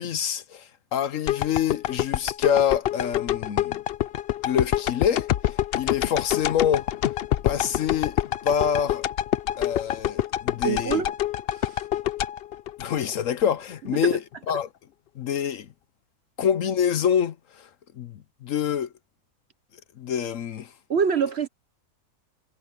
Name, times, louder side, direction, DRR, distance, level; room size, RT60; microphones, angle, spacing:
voice 1, 0.0-3.8 4.4-6.9 7.4-8.2 8.4-9.0 9.6-11.0 12.8-14.2 14.5-14.7 15.2-15.7 16.4-17.7 18.0-18.9 20.0-20.7, left 8 dB, 65° left, 1.1 m, -26 dB
sound 1, 1.3-13.4 13.9-14.0, left 12 dB, 80° left, 0.5 m, -26 dB
voice 2, 10.6-11.1 11.6-11.8 20.9-21.5, right 6 dB, 50° right, 1.0 m, -24 dB
omnidirectional pair, 1.6 m